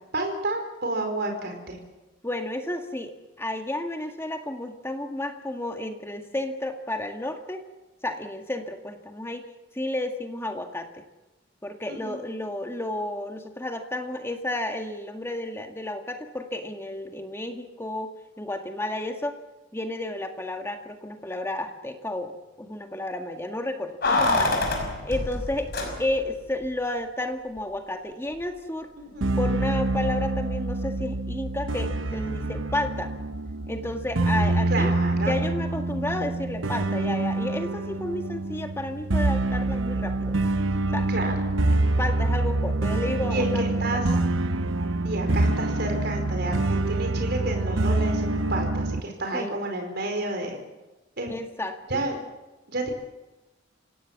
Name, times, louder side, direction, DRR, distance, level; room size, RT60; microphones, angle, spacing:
voice 1, 0.1-1.8 11.9-12.2 29.0-29.3 34.7-35.4 41.1-41.5 43.3-44.1 45.0-50.6 51.2-51.3 51.9-52.2 52.7-52.9, right 2 dB, 60° right, 3 dB, 4.8 m, -30 dB
voice 2, 2.2-7.6 8.0-9.5 9.7-11.0 11.6-18.1 18.4-19.4 19.7-24.7 25.0-25.7 26.0-28.9 29.4-33.1 33.7-40.4 40.9-41.1 42.0-43.6 43.9-44.0 45.1-45.4 49.3-49.5 51.3-52.0, left 1 dB, 15° left, 5 dB, 1.8 m, -32 dB
Keys jangling, 24.0-26.4 26.6-26.7, left 2 dB, 55° left, 5.7 m, -26 dB
sound 1, 29.2-49.0, right 2 dB, 90° right, 1.1 m, -26 dB
27.5 x 17.5 x 7.4 m, 1.1 s
head